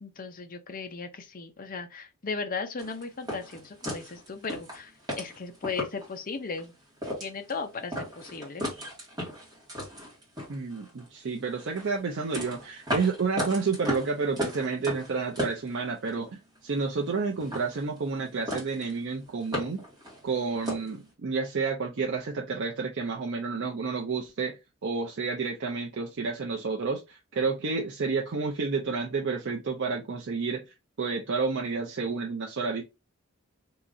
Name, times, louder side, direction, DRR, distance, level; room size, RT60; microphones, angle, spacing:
voice 1, 0.0-6.7 7.2-8.6, left 4 dB, 40° left, 0.6 m, -36 dB
sound 1, 2.8-6.1 6.6-6.7 7.0-7.6 7.9-11.1 11.6-16.3 16.6-17.1 17.4-18.2 18.5-19.0 19.2-21.0, equal, 20° right, 1.6 m, -35 dB
voice 2, 10.5-19.8 20.2-30.6 31.0-32.8, right 4 dB, 55° right, 0.5 m, -30 dB
3.7 x 2.9 x 2.6 m
head